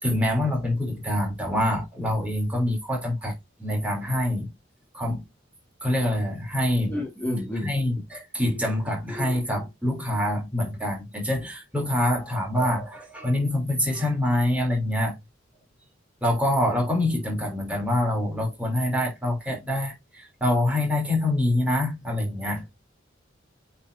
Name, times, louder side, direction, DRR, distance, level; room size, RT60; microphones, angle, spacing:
voice 1, 0.0-3.3 3.6-4.5 4.9-5.2 5.8-7.0 7.6-15.1 16.2-22.6, left 1 dB, 5° right, 3.3 m, -25 dB
voice 2, 6.9-7.7, left 1 dB, 10° left, 2.7 m, -29 dB
8.5 x 4.4 x 2.7 m
head